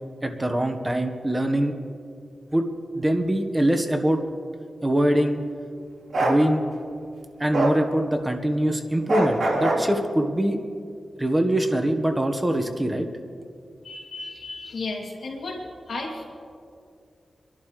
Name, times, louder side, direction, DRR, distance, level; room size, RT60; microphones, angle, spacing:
voice 1, 0.2-1.7 2.5-2.7 2.9-4.2 4.8-5.4 6.2-6.6 7.4-10.6 11.2-13.1, right 1 dB, 20° right, 5 dB, 1.2 m, -23 dB
Bark, 6.1-6.4 7.5-7.8 9.1-9.9, right 1 dB, 60° right, 3.3 m, -22 dB
voice 2, 13.8-15.6 15.9-16.2, left 3 dB, 80° left, -1 dB, 2.7 m, -33 dB
25.5 x 11.5 x 3.2 m, 2.4 s
cardioid pair, 70°, 0 cm